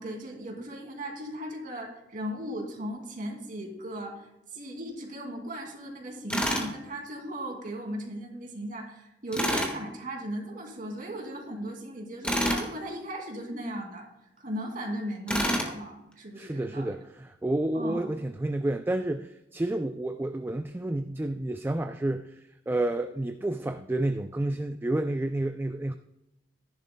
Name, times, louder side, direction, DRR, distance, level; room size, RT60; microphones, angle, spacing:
voice 1, 0.0-14.1 14.4-17.0 17.7-18.1, equal, 50° right, 1 dB, 2.5 m, -37 dB
Tools, 6.3-6.7 9.3-9.7 12.2-12.7 15.3-15.7, equal, 5° left, 1.4 m, -27 dB
voice 2, 16.4-22.4 22.7-25.9, right 1 dB, 10° right, 8 dB, 0.3 m, -30 dB
14.5 x 10.5 x 2.2 m, 0.89 s
head